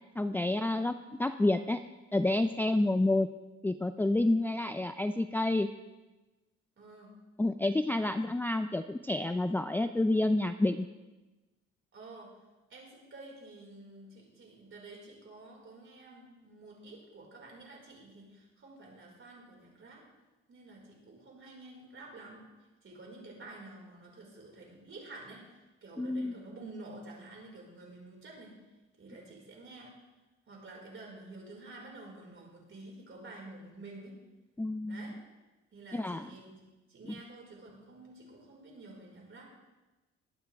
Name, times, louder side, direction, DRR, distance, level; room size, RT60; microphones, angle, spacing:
voice 1, 0.2-0.9 1.2-1.8 2.1-3.3 3.6-5.7 7.4-10.9 26.0-26.4 34.6-35.1 35.9-36.3 37.1-37.2, left 2 dB, 5° left, 8 dB, 0.4 m, -29 dB
voice 2, 6.8-7.2 8.0-8.1 11.9-12.3 12.7-20.0 20.5-22.4 22.8-28.6 29.0-29.9 30.5-34.2 34.9-35.1 35.7-36.6 36.9-39.4, right 2 dB, 45° right, -2 dB, 5.0 m, -50 dB
21.5 x 8.9 x 3.5 m, 1.1 s
cardioid pair, 90°, 30 cm